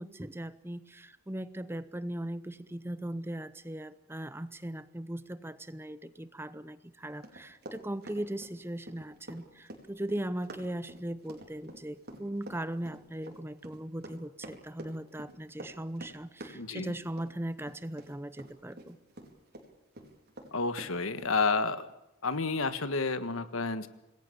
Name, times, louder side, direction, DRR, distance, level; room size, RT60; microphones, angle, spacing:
voice 1, 0.0-19.0, right 1 dB, 10° right, 14 dB, 0.7 m, -39 dB
Run, 7.2-19.7 19.9-21.3, right 1 dB, 50° right, 4.4 m, -47 dB
voice 2, 16.5-16.9 20.5-21.9 22.2-23.9, left 4 dB, 85° left, 11 dB, 1.5 m, -30 dB
27.0 x 20.5 x 6.9 m, 0.88 s
head